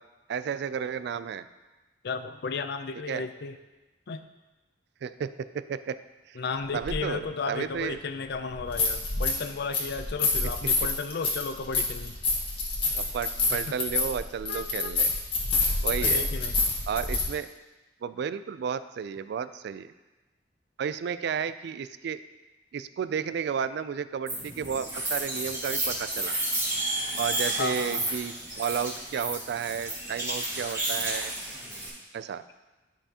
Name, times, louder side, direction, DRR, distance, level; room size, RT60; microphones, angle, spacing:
voice 1, 0.3-1.5 3.1-3.3 5.0-6.0 6.3-6.4 6.7-8.0 12.9-15.1 15.8-16.3 16.9-17.5 18.0-19.9 20.8-22.2 22.7-26.4 27.2-31.3 32.1-32.4, right 7 dB, 65° right, 14 dB, 0.3 m, -32 dB
voice 2, 2.0-3.6 4.1-4.2 6.3-12.2 13.5-13.8 14.5-15.0 16.0-16.6 27.6-28.1 29.1-29.2, left 4 dB, 65° left, 9 dB, 0.5 m, -34 dB
sound 1, 6.8-6.9 8.5-9.4 9.7-17.2, left 3 dB, 30° left, 1.5 m, -27 dB
sound 2, 24.3-31.9, right 1 dB, 15° right, 1.9 m, -32 dB
10.5 x 5.5 x 2.8 m, 1.1 s
head